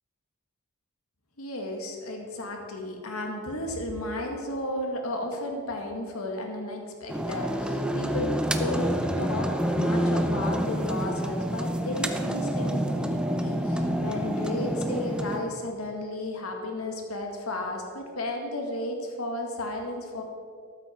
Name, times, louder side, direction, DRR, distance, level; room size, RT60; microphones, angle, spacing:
voice 1, 1.4-20.2, left 1 dB, 90° left, 2 dB, 2.0 m, -33 dB
sound 1, 7.1-15.4, equal, 5° right, 0.7 m, -28 dB
14.0 x 12.5 x 4.5 m, 2.1 s
head